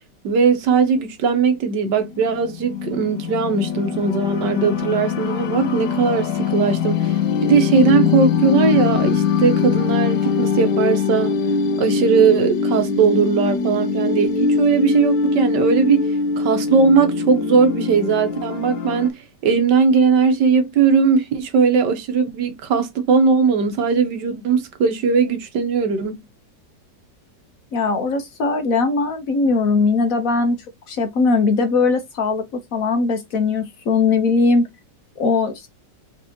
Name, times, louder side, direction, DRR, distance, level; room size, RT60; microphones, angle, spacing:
voice 1, 0.2-11.4 11.8-16.0 16.4-19.1 19.4-26.2, right 5 dB, 75° right, 1.6 m, -19 dB
sound 1, 2.1-19.1, left 5 dB, 75° left, 1.4 m, -22 dB
voice 2, 27.7-30.6 30.9-34.7 35.2-35.7, left 4 dB, 55° left, 1.2 m, -19 dB
4.5 x 4.2 x 2.8 m
omnidirectional pair, 1.9 m